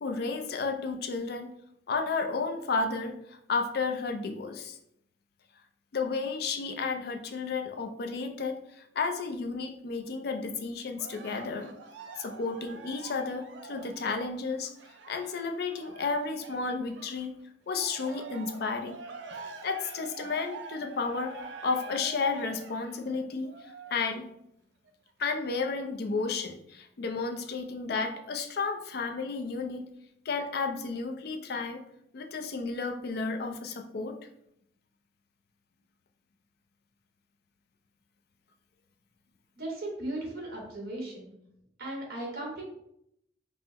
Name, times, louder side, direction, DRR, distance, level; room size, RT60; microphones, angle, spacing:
voice 1, 0.0-1.5 1.9-4.8 5.9-11.7 12.2-14.7 15.1-17.3 17.7-19.0 19.6-21.4 21.6-23.5 23.9-24.3 25.2-29.9 30.3-31.8 32.1-34.2, left 4 dB, 55° left, 5 dB, 0.4 m, -32 dB
Cheering, 11.0-17.3 17.7-24.3 24.9-25.0, right 4 dB, 70° right, 0.4 m, -46 dB
voice 2, 39.6-41.3 41.8-42.6, right 1 dB, 50° right, -2 dB, 1.3 m, -37 dB
5.4 x 2.0 x 2.8 m, 0.76 s
head